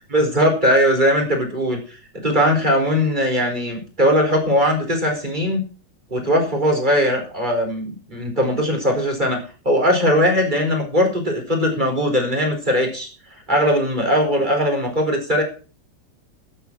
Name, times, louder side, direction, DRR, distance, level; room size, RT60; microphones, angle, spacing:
voice 1, 0.1-5.6 6.1-13.1 13.5-15.4, equal, 25° right, 3 dB, 4.7 m, -19 dB
13.0 x 8.9 x 6.2 m, 0.36 s
omnidirectional pair, 1.7 m